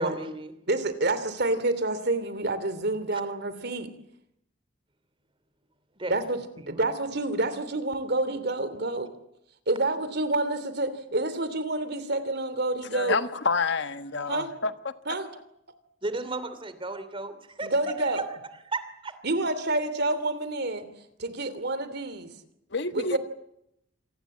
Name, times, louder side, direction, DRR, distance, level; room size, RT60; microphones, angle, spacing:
voice 1, 0.0-0.5 6.0-6.1 6.6-6.9 16.0-17.7 18.0-18.2 18.7-19.1, right 2 dB, 30° right, 2.9 m, -34 dB
voice 2, 0.7-3.9 6.1-6.4 6.7-9.1 9.7-13.2 14.3-14.5 15.1-15.3 17.6-18.2 19.2-20.9 21.2-22.3 22.9-23.2, right 2 dB, 60° right, 3.0 m, -28 dB
voice 3, 12.9-14.7 22.7-23.2, left 4 dB, 65° left, 1.4 m, -28 dB
27.5 x 19.5 x 8.6 m
head